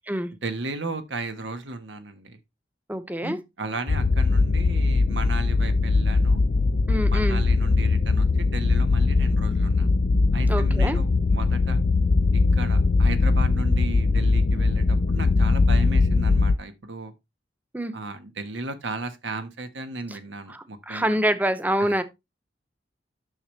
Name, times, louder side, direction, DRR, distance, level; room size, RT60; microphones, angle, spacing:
voice 1, 0.4-2.4 3.2-6.4 7.1-9.9 10.3-11.8 12.3-17.1 17.9-21.2 21.8-21.9, right 3 dB, 90° right, 1.3 m, -35 dB
voice 2, 2.9-3.4 6.9-7.4 10.5-11.0 17.7-17.9 20.5-22.0, right 1 dB, 10° right, 0.8 m, -26 dB
sound 1, 3.9-16.6, left 3 dB, 45° left, 0.4 m, -21 dB
9.5 x 6.9 x 3.3 m
head